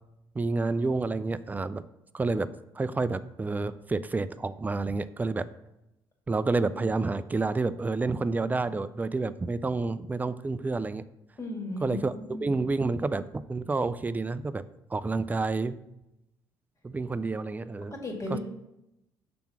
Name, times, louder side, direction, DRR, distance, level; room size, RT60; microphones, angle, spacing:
voice 1, 0.3-1.8 2.1-2.5 2.7-5.5 6.3-11.0 11.8-12.1 12.4-14.6 14.9-15.8 16.8-18.0 18.3-18.4, right 3 dB, 20° right, 14 dB, 0.3 m, -29 dB
voice 2, 11.4-12.0 12.3-12.4 17.9-18.4, left 2 dB, 35° left, 1 dB, 1.9 m, -35 dB
5.9 x 3.6 x 5.9 m, 0.89 s
supercardioid pair, 75°, 9 cm